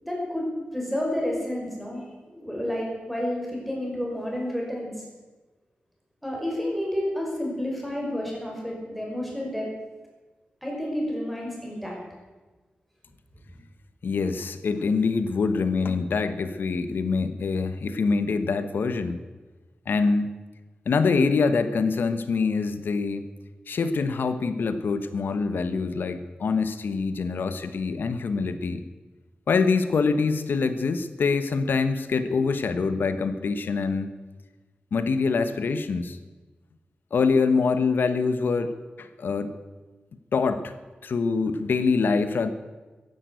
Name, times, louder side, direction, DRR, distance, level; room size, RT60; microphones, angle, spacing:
voice 1, 0.0-0.5 0.7-5.0 6.2-9.7 10.6-12.0, left 1 dB, ahead, -2 dB, 5.5 m, -30 dB
voice 2, 14.0-19.2 19.9-20.3 20.9-23.3 23.7-28.8 29.5-34.1 34.9-36.2 37.1-39.5 40.3-40.7 41.0-42.5, left 4 dB, 80° left, 11 dB, 1.1 m, -25 dB
14.0 x 11.0 x 8.3 m, 1.3 s
wide cardioid pair, 110°, 3 cm